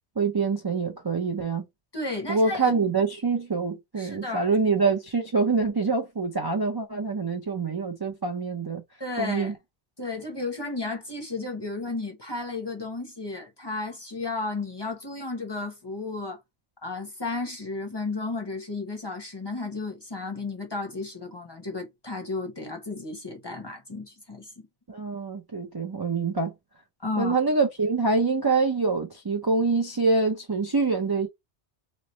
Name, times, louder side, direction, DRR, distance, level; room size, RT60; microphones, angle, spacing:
voice 1, 0.2-1.7 2.3-8.8 9.2-9.5 24.9-26.5 27.2-31.3, right 4 dB, 30° right, 0.4 m, -25 dB
voice 2, 1.9-2.7 4.0-4.5 9.0-9.5 10.0-16.4 16.8-24.7 27.0-27.4, left 3 dB, 25° left, 0.8 m, -33 dB
3.2 x 2.0 x 3.9 m
omnidirectional pair, 1.2 m